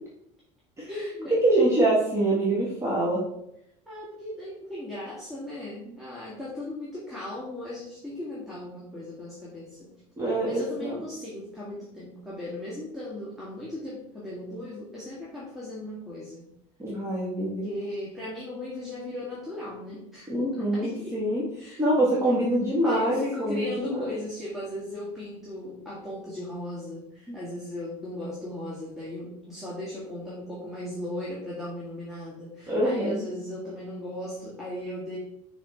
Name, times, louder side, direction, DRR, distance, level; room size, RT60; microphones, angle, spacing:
voice 1, 0.9-1.3 3.9-9.9 10.4-16.5 17.6-20.3 20.6-21.2 21.6-21.8 22.8-35.2, left 1 dB, ahead, -7 dB, 2.0 m, -37 dB
voice 2, 1.4-3.2 5.9-6.0 10.2-11.0 16.8-17.6 20.3-24.0 27.3-27.4 32.7-33.3, right 1 dB, 15° right, -6 dB, 1.8 m, -25 dB
5.9 x 4.2 x 4.2 m, 0.77 s
supercardioid pair, 100°, 16 cm